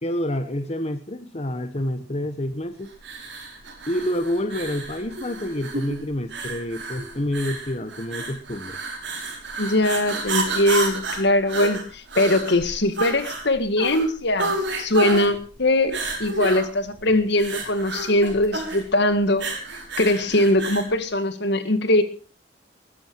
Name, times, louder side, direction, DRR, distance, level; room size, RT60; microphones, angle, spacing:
voice 1, 0.0-2.9 3.9-8.8, left 1 dB, 35° left, 8 dB, 1.4 m, -28 dB
sound 1, 3.0-20.9, right 2 dB, 65° right, 6.0 m, -31 dB
voice 2, 9.6-19.4 20.0-22.0, left 1 dB, 65° left, 10 dB, 2.0 m, -21 dB
21.0 x 11.5 x 4.7 m, 0.36 s
head